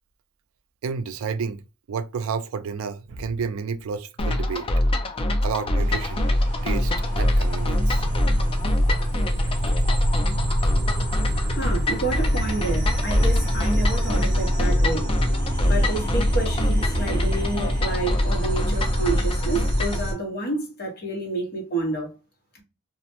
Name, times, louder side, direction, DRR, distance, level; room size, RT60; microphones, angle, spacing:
voice 1, 0.8-1.6 1.9-4.7 5.4-6.2 6.6-6.9 7.2-8.0, right 5 dB, 70° right, 0.4 m, -30 dB
sound 1, 4.2-20.0, left 1 dB, 25° left, 0.4 m, -25 dB
sound 2, 5.8-20.1, equal, 40° right, 0.7 m, -26 dB
voice 2, 11.5-15.1 15.6-22.2, right 2 dB, 50° left, 1.0 m, -29 dB
2.4 x 2.0 x 2.8 m
head